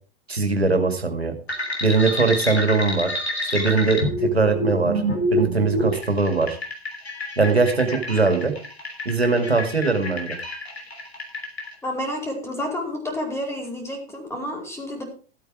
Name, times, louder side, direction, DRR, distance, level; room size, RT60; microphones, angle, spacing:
voice 1, 0.3-1.3 1.8-3.1 3.5-5.0 5.3-6.6 7.4-8.5 9.1-10.4, right 4 dB, 90° right, 5 dB, 2.2 m, -21 dB
sound 1, 1.5-11.7, equal, 90° left, 3.3 m, -28 dB
voice 2, 11.8-15.0, left 1 dB, 10° left, 2 dB, 4.7 m, -30 dB
13.5 x 8.6 x 4.8 m, 0.39 s
figure-of-eight pair, 95°, 31 cm